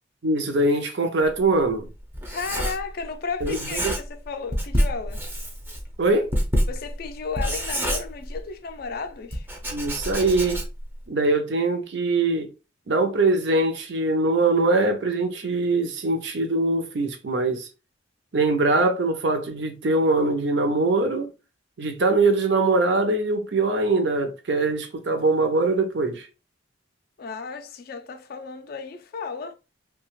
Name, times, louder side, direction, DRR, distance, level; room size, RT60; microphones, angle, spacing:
voice 1, 0.2-1.9 3.4-3.9 6.0-6.3 9.7-10.6 11.1-12.5 12.9-17.7 18.3-21.3 21.8-26.3, right 2 dB, 60° right, 0.6 m, -22 dB
Writing, 1.2-3.1 3.4-4.2 4.5-8.7 9.3-10.9, equal, 10° right, 0.5 m, -27 dB
voice 2, 2.3-5.2 6.7-9.5 27.2-29.5, left 5 dB, 50° left, 0.4 m, -34 dB
2.8 x 2.2 x 3.0 m
head